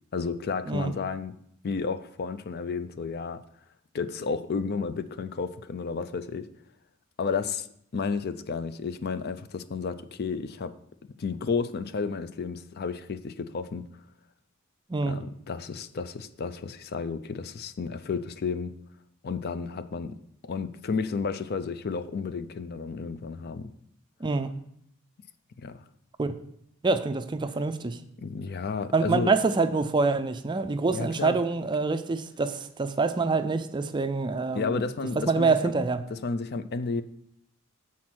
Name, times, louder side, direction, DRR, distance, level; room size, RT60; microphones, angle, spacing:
voice 1, 0.1-1.3 1.6-3.4 3.9-6.5 7.2-7.7 7.9-10.7 11.2-13.9 15.1-18.7 19.2-20.2 20.5-23.7 25.6-25.8 28.2-29.3 30.9-31.4 34.5-35.7 36.1-37.0, left 5 dB, 50° left, 12 dB, 0.4 m, -32 dB
voice 2, 24.2-24.5 26.2-26.3 26.8-28.0 28.9-34.8 35.3-36.0, right 4 dB, 20° right, 10 dB, 0.4 m, -26 dB
7.5 x 4.2 x 6.2 m, 0.70 s
head